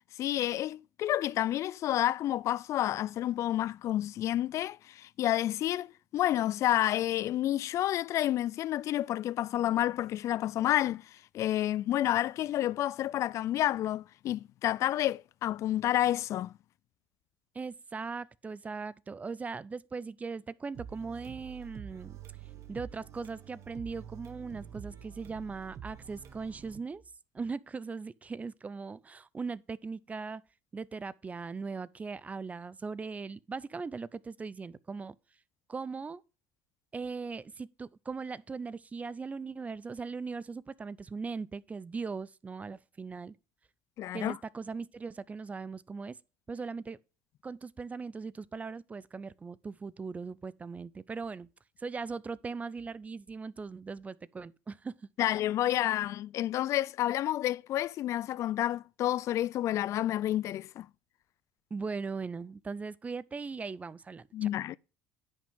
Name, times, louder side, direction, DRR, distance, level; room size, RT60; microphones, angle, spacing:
voice 1, 0.2-16.5 44.0-44.4 55.2-60.9 64.3-64.8, left 13 dB, 50° left, 0.4 m, -30 dB
voice 2, 17.5-22.2 22.7-27.0 27.3-30.4 30.7-35.2 35.7-36.2 36.9-43.4 44.1-46.2 46.5-47.0 47.4-51.5 51.8-55.4 61.7-64.5, right 4 dB, 20° right, 0.5 m, -39 dB
sound 1, 20.7-26.8, right 9 dB, 50° right, 1.4 m, -47 dB
10.0 x 6.0 x 3.6 m
supercardioid pair, 90°, 6 cm